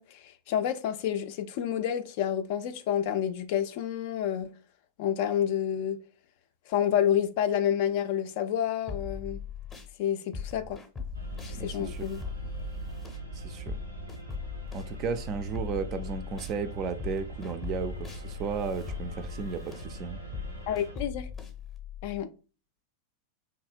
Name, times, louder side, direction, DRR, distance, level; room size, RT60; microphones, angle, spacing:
voice 1, 0.0-4.5 5.0-6.0 6.7-9.4 10.0-10.8 11.5-12.2 20.7-21.3 22.0-22.3, left 9 dB, 50° left, 0.3 m, -29 dB
sound 1, 8.9-9.9 10.3-16.6 17.0-22.2, left 6 dB, 15° left, 0.7 m, -40 dB
sound 2, 11.1-21.0, right 4 dB, 85° right, 0.8 m, -42 dB
voice 2, 11.5-12.0 13.3-13.8 14.7-20.2, right 5 dB, 35° right, 0.4 m, -34 dB
3.0 x 2.7 x 2.5 m
figure-of-eight pair, 90°, 0 cm